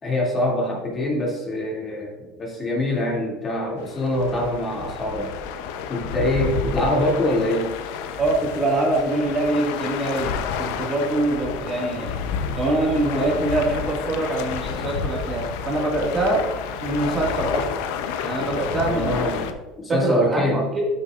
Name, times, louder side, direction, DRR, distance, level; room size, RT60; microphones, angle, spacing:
voice 1, 0.0-5.3 5.9-7.7 18.8-19.5 19.8-20.7, left 1 dB, 25° left, -2 dB, 2.5 m, -24 dB
sound 1, 3.8-19.5, left 6 dB, 80° left, 0.7 m, -30 dB
voice 2, 8.2-12.2 12.6-16.4 16.8-17.6 18.2-19.4 20.0-20.8, right 2 dB, 25° right, -2 dB, 1.9 m, -24 dB
12.5 x 6.8 x 2.5 m, 1.2 s
supercardioid pair, 130°, 0 cm